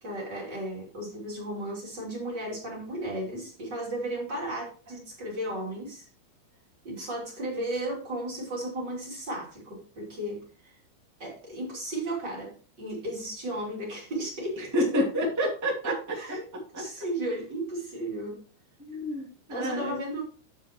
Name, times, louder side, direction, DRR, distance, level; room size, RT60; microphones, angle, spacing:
voice 1, 0.0-6.1 6.8-10.8 11.2-15.0 15.4-15.5 15.8-16.5 16.7-18.4 19.5-20.2, right 1 dB, 30° right, -4 dB, 2.6 m, -35 dB
voice 2, 14.6-16.0 16.5-16.8 18.8-20.0, equal, 10° right, -3 dB, 0.9 m, -29 dB
9.6 x 7.2 x 2.9 m, 0.38 s
omnidirectional pair, 5.2 m